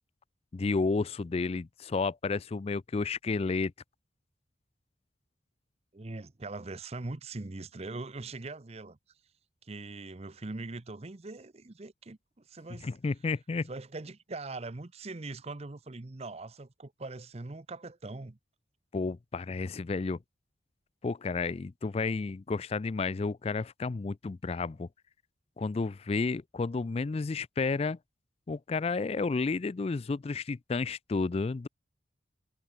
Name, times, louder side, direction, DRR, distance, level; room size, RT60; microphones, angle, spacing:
voice 1, 0.5-3.7 12.8-13.7 18.9-20.2 21.0-24.9 25.6-28.0 28.5-31.7, left 4 dB, 30° left, 0.4 m, -31 dB
voice 2, 5.9-9.0 9.6-12.9 13.7-18.4, right 3 dB, 35° right, 0.7 m, -41 dB
head